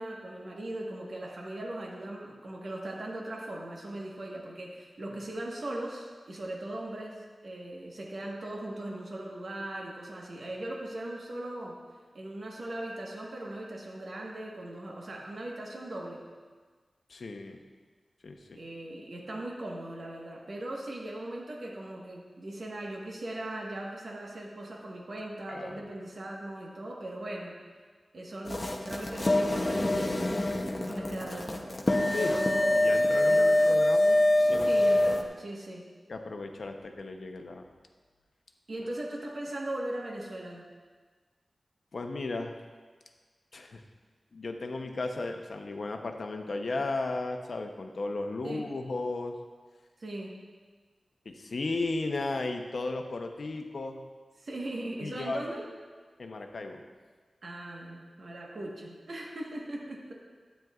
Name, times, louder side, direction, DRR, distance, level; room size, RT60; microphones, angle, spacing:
voice 1, 0.0-11.8 12.1-16.2 18.5-27.6 28.1-30.4 30.7-31.8 32.1-33.0 33.2-33.8 34.6-35.9 38.7-40.7 48.4-48.7 50.0-50.4 54.4-55.6 57.4-60.1, right 1 dB, 60° right, -2 dB, 1.3 m, -39 dB
voice 2, 17.1-17.6 18.2-18.6 25.5-25.8 32.1-34.2 34.5-35.2 36.1-37.6 41.9-42.5 43.5-43.8 44.3-49.3 51.2-54.0 55.0-55.4 56.2-56.8, left 3 dB, 60° left, 4 dB, 0.7 m, -35 dB
sound 1, 28.5-35.2, left 1 dB, 25° left, 0.7 m, -25 dB
12.0 x 9.0 x 2.4 m, 1.5 s
wide cardioid pair, 105°, 0 cm